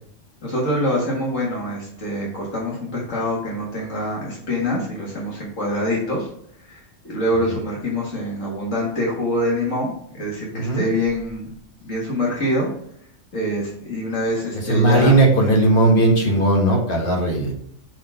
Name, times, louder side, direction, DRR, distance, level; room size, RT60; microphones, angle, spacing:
voice 1, 0.4-6.3 6.7-11.5 11.8-12.7 13.3-15.2, left 1 dB, 80° left, -4 dB, 2.0 m, -25 dB
voice 2, 10.5-10.9 14.5-17.5, right 2 dB, 45° left, 1 dB, 1.6 m, -17 dB
5.6 x 4.0 x 5.7 m, 0.67 s
omnidirectional pair, 1.3 m